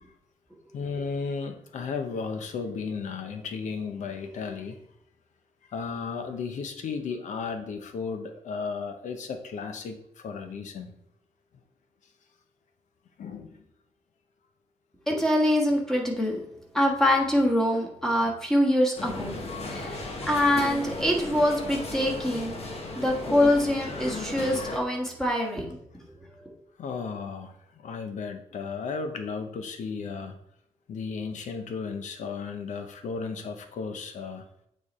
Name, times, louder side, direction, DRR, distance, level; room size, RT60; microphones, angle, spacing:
voice 1, 0.7-4.8 5.7-10.9 13.2-13.6 19.2-19.3 26.8-30.4 30.9-34.5, left 5 dB, 85° left, 7 dB, 0.8 m, -34 dB
voice 2, 15.1-16.4 16.7-19.4 19.7-22.6 22.9-25.8 26.4-26.5, left 1 dB, 5° left, -2 dB, 1.5 m, -24 dB
sound 1, 19.0-24.8, left 2 dB, 55° left, 1.2 m, -35 dB
8.7 x 3.3 x 4.2 m, 0.74 s
wide cardioid pair, 130°, 12 cm